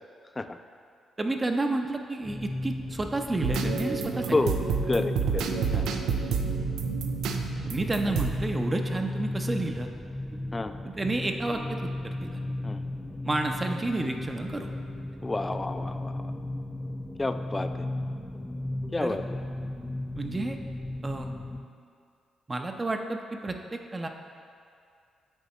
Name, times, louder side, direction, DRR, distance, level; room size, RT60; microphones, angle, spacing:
voice 1, 1.2-4.3 7.6-9.9 10.8-12.4 13.2-14.7 19.0-19.2 20.1-20.6 21.0-21.3 22.5-24.1, right 2 dB, 30° right, 4 dB, 0.6 m, -30 dB
sound 1, 2.2-21.6, left 1 dB, 10° left, 0.8 m, -35 dB
sound 2, 3.4-8.6, right 6 dB, 80° right, 0.4 m, -30 dB
voice 2, 4.3-4.6 4.9-6.0 8.1-8.2 10.5-10.7 12.6-12.8 15.2-16.2 17.2-17.7 18.9-19.2, left 2 dB, 25° left, 9 dB, 0.4 m, -30 dB
8.1 x 3.5 x 4.2 m, 2.4 s
supercardioid pair, 50°, 0 cm